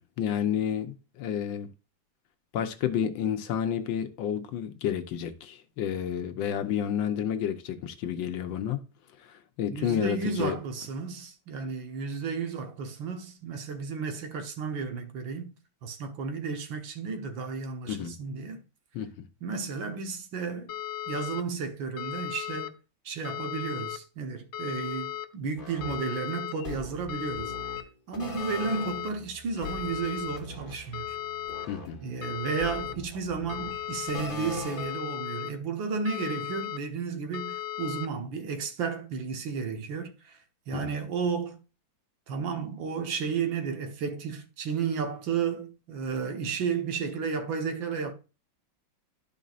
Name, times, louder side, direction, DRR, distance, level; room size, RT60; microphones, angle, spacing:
voice 1, 0.0-1.7 2.5-8.8 9.3-10.6 17.9-18.1 18.9-19.1 31.7-32.0 40.7-40.9, left 9 dB, 85° left, 1.6 m, -30 dB
voice 2, 9.7-15.5 15.8-18.6 19.4-20.7 21.1-22.7 23.1-27.5 28.1-31.2 32.0-40.4 40.7-41.6 42.3-48.1, right 5 dB, 80° right, 1.9 m, -33 dB
sound 1, 20.7-21.4 22.0-22.7 23.2-24.0 24.5-25.3 25.8-26.5 27.1-27.8 28.4-29.1 29.6-30.4 30.9-31.7 32.2-32.9 33.5-34.2 34.8-35.5 36.1-36.8 37.3-38.1, left 12 dB, 65° left, 0.9 m, -36 dB
sound 2, 25.6-35.2, left 2 dB, 30° left, 1.1 m, -41 dB
11.5 x 5.3 x 2.5 m
omnidirectional pair, 2.1 m